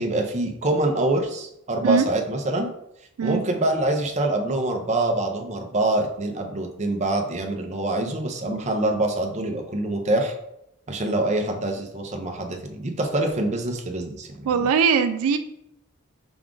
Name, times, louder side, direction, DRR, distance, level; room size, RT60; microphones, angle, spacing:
voice 1, 0.0-2.7 3.2-10.3 10.9-14.7, right 2 dB, 35° right, 3 dB, 0.6 m, -25 dB
voice 2, 14.5-15.4, right 6 dB, 80° right, 8 dB, 0.3 m, -20 dB
6.0 x 2.4 x 3.7 m, 0.81 s
head